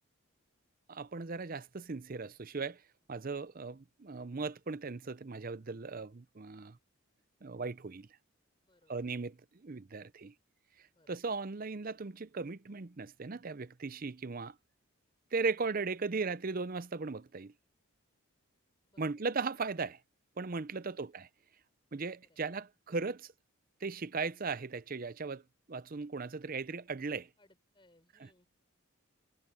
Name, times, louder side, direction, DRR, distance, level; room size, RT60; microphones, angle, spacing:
voice 1, 0.9-2.8 3.1-6.8 7.4-8.1 8.9-9.4 9.6-10.3 11.1-14.5 15.3-17.5 19.0-20.0 20.4-21.3 21.9-23.3 23.8-25.4 25.7-27.3 28.2-28.3, right 4 dB, 40° right, 0.6 m, -37 dB
voice 2, 8.6-9.1 10.9-11.3 18.9-19.2 20.8-21.1 22.2-22.4 27.4-28.5, left 1 dB, 20° left, 4.0 m, -68 dB
head